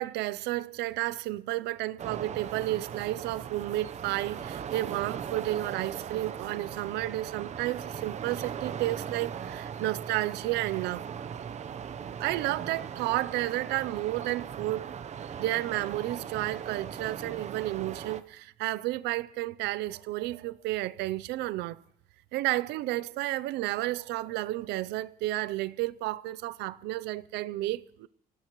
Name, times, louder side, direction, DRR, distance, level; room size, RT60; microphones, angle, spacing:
voice 1, 0.0-11.1 12.2-14.9 15.4-21.8 22.3-28.1, right 16 dB, 85° right, 0.5 m, -32 dB
sound 1, 2.0-18.2, right 8 dB, 40° right, 0.8 m, -39 dB
24.5 x 18.5 x 3.1 m
cardioid pair, 110°, 17 cm